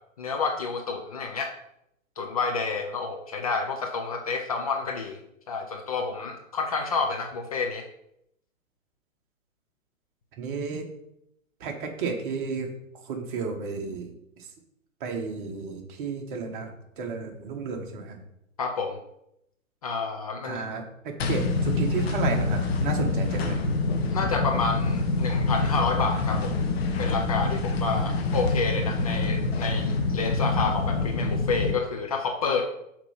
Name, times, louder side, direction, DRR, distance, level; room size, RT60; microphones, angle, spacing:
voice 1, 0.2-1.5 2.2-5.2 5.5-7.8 18.6-19.0 19.8-20.6 24.1-26.6 27.0-32.6, left 4 dB, 25° left, 3 dB, 0.5 m, -29 dB
voice 2, 10.4-10.9 11.6-12.7 13.0-14.1 15.0-16.7 17.0-18.2 20.4-23.6 27.7-28.2, right 5 dB, 35° right, 3 dB, 1.4 m, -33 dB
sound 1, 21.2-31.8, left 3 dB, 45° left, 0.9 m, -26 dB
5.9 x 4.4 x 5.6 m, 0.79 s
figure-of-eight pair, 120°, 42 cm